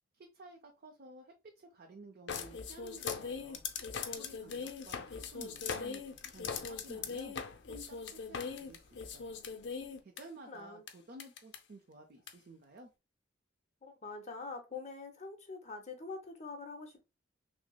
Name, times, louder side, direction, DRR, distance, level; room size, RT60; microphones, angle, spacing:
voice 1, 0.1-3.6 4.2-7.4 7.7-9.4 10.0-12.9, right 2 dB, 50° right, 0.5 m, -54 dB
sound 1, 2.3-10.2 10.9-11.0 11.2-11.6 12.3-12.4, left 5 dB, 60° left, 0.5 m, -40 dB
voice 2, 10.5-10.8 13.8-17.1, left 4 dB, 35° left, 0.8 m, -45 dB
5.8 x 2.0 x 2.2 m
head